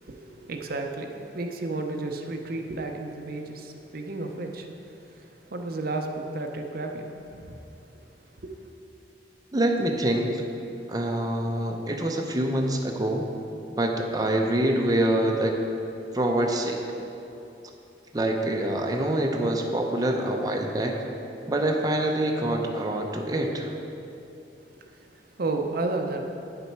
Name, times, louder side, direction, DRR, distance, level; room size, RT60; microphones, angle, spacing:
voice 1, 0.0-7.6 8.4-8.5 24.7-26.2, right 2 dB, 55° right, 3 dB, 0.7 m, -33 dB
voice 2, 9.5-10.4 10.9-13.3 13.8-15.6 16.1-16.8 18.1-21.0 21.5-23.7, right 1 dB, 20° right, 1 dB, 0.6 m, -25 dB
9.3 x 7.1 x 4.6 m, 2.8 s
head